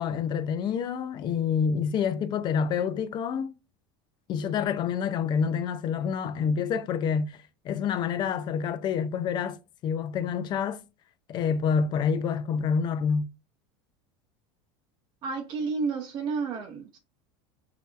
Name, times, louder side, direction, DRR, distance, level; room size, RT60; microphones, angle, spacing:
voice 1, 0.0-3.5 4.3-7.4 7.6-9.6 9.8-10.8 11.3-13.3, left 6 dB, 35° left, 0.5 m, -27 dB
voice 2, 15.2-17.0, right 4 dB, 35° right, 0.7 m, -31 dB
5.9 x 2.8 x 2.4 m
supercardioid pair, 145°, 13 cm